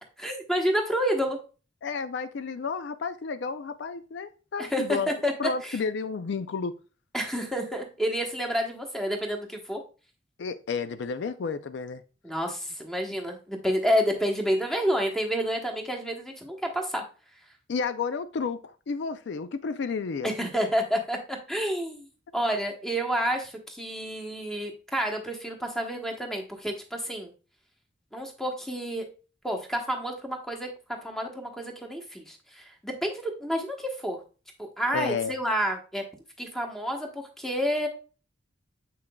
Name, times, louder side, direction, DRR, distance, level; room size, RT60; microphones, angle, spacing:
voice 1, 0.2-1.4 4.6-5.3 5.6-5.8 7.1-9.8 12.2-17.0 20.2-22.1 22.3-27.3 28.1-29.1 29.4-30.7 31.0-34.2 34.6-36.0 36.4-37.9, equal, ahead, 1.0 m, -29 dB
voice 2, 1.8-5.1 5.4-6.7 10.4-12.0 17.7-20.3 34.9-35.3, left 5 dB, 65° left, 0.4 m, -31 dB
7.6 x 5.9 x 2.3 m
head